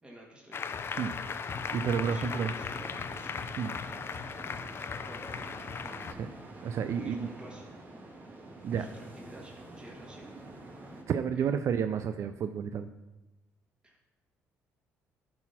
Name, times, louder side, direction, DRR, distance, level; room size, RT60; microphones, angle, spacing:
voice 1, 0.0-0.6 2.0-3.4 5.1-5.7 6.9-7.7 8.7-10.2 11.3-11.7 13.8-14.0, right 1 dB, 15° right, -1 dB, 1.9 m, -50 dB
Applause, 0.5-6.1, left 5 dB, 45° left, 0.6 m, -37 dB
sound 1, 1.5-11.0, right 2 dB, 30° right, 1.8 m, -48 dB
voice 2, 1.7-2.5 3.6-3.7 6.2-6.3 6.6-7.3 8.6-8.8 11.1-12.9, right 7 dB, 55° right, 9 dB, 0.4 m, -30 dB
10.5 x 4.2 x 5.8 m, 1.0 s
supercardioid pair, 65°, 6 cm